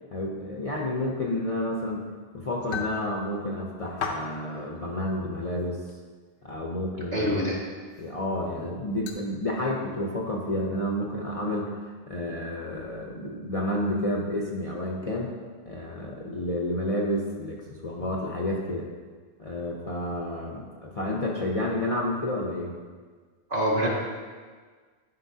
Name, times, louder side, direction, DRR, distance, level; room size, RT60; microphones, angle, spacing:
voice 1, 0.1-2.1 2.3-5.8 6.4-7.3 8.0-15.3 15.6-18.9 19.4-22.7, left 1 dB, 35° left, -2 dB, 0.7 m, -30 dB
sound 1, 2.5-3.0 3.8-4.3 4.9-5.0 5.9-6.0 7.9-8.1 9.1-9.2, left 5 dB, 80° left, 1.0 m, -33 dB
voice 2, 7.1-7.6 23.5-23.9, equal, 40° right, -6 dB, 1.9 m, -25 dB
11.5 x 5.5 x 2.8 m, 1.5 s
omnidirectional pair, 1.1 m